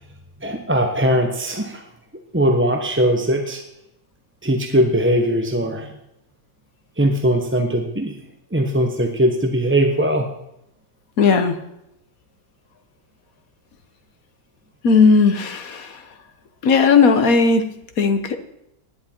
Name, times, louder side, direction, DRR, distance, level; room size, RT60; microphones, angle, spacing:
voice 1, 0.4-1.8 2.3-3.6 4.4-5.9 7.0-8.2 8.5-10.3, right 1 dB, 10° right, 4 dB, 0.6 m, -20 dB
voice 2, 11.2-11.6 14.8-16.0 16.6-18.4, left 5 dB, 50° left, 8 dB, 1.4 m, -16 dB
17.0 x 11.0 x 4.5 m, 0.83 s
omnidirectional pair, 2.0 m